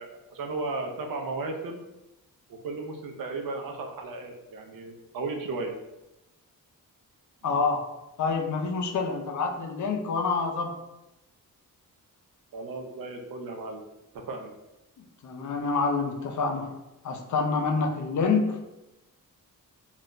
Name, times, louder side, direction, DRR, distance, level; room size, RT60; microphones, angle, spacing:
voice 1, 0.0-1.8 2.5-5.7 7.5-7.6 12.5-13.8 14.1-14.5, right 3 dB, 75° right, 2 dB, 0.6 m, -35 dB
voice 2, 7.4-7.8 8.2-10.7 15.2-16.7 17.0-18.6, left 4 dB, 55° left, 2 dB, 0.5 m, -27 dB
2.5 x 2.1 x 3.7 m, 0.96 s
cardioid pair, 95°, 35 cm